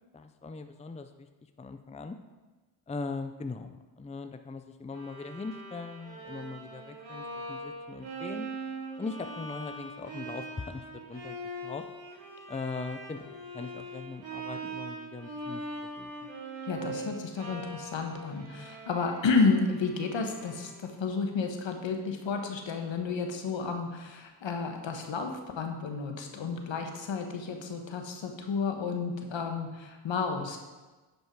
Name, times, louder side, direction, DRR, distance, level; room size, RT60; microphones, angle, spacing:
voice 1, 0.1-1.3 1.6-2.2 2.9-8.5 9.0-11.4 11.6-11.8 12.5-13.3 13.5-15.6 16.0-16.1, left 3 dB, 15° left, 8 dB, 0.5 m, -40 dB
Bowed string instrument, 4.9-21.0, right 2 dB, 80° right, 3.1 m, -42 dB
voice 2, 16.6-30.6, left 4 dB, 75° left, 4 dB, 1.4 m, -31 dB
10.5 x 5.4 x 4.7 m, 1.2 s
cardioid pair, 60°, 46 cm